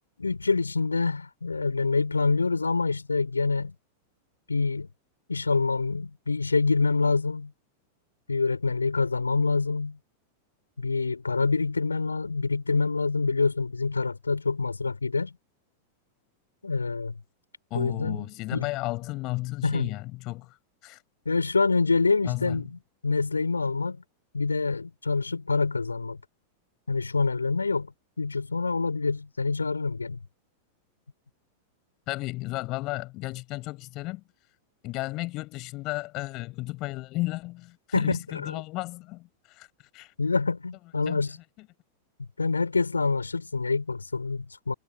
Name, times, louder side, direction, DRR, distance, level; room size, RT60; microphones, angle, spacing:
voice 1, 0.2-3.7 4.5-4.9 5.3-7.5 8.3-10.0 10.8-15.4 16.6-17.1 17.7-18.7 19.6-19.9 21.3-24.0 24.3-26.2 26.9-27.9 28.2-30.2 37.9-38.6 40.2-41.4 42.4-44.7, left 4 dB, 80° left, 3.6 m, -26 dB
voice 2, 17.7-20.5 20.8-21.0 22.2-22.6 32.1-34.2 34.8-39.7 39.9-40.1 41.1-41.2, left 21 dB, 40° left, 6.6 m, -33 dB
figure-of-eight pair, 90°, 0 cm